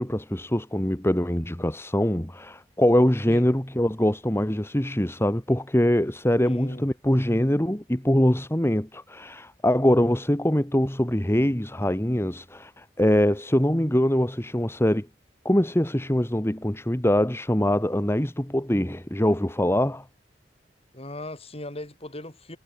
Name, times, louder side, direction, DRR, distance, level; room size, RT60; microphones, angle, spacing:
voice 1, 0.0-15.1 15.5-20.0, equal, 15° left, 1.9 m, -23 dB
voice 2, 6.4-6.9 20.9-22.6, left 1 dB, 35° left, 6.1 m, -38 dB
head